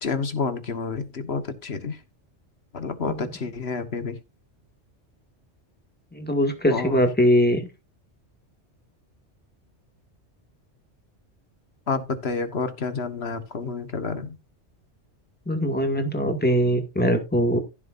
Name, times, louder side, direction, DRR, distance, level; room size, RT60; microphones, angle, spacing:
voice 1, 0.0-2.0 2.7-4.2 6.7-7.0 11.9-14.4, left 4 dB, 60° left, 1.6 m, -29 dB
voice 2, 6.1-7.6 15.5-17.6, equal, 10° left, 2.0 m, -21 dB
15.0 x 7.3 x 2.6 m
omnidirectional pair, 1.2 m